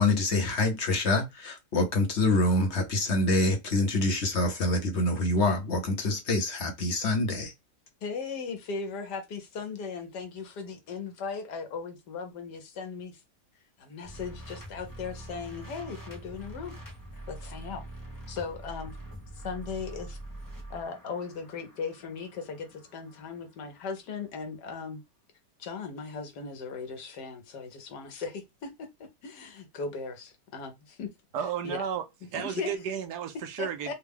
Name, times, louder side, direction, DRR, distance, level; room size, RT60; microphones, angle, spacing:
voice 1, 0.0-7.5, left 2 dB, 50° left, 1.0 m, -26 dB
voice 2, 8.0-13.2 13.8-16.8 17.3-17.8 18.3-19.0 19.4-20.2 20.7-25.0 25.6-31.1 31.6-31.9 32.4-32.7 33.6-33.9, left 5 dB, 80° left, 1.5 m, -38 dB
sound 1, 14.0-24.0, right 1 dB, 25° left, 0.4 m, -44 dB
voice 3, 31.3-32.0 32.3-33.9, right 8 dB, 80° right, 1.2 m, -33 dB
3.6 x 2.3 x 3.5 m
omnidirectional pair, 1.8 m